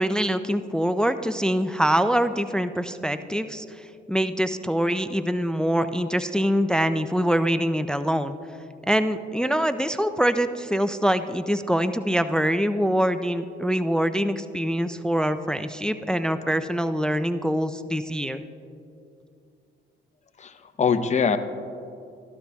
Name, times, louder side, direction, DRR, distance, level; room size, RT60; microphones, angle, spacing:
voice 1, 0.0-8.4 8.9-18.4, equal, 5° left, 11 dB, 0.3 m, -24 dB
voice 2, 20.4-21.4, left 6 dB, 35° left, 9 dB, 0.7 m, -23 dB
13.5 x 12.0 x 2.3 m, 2.5 s
cardioid pair, 90°, 20 cm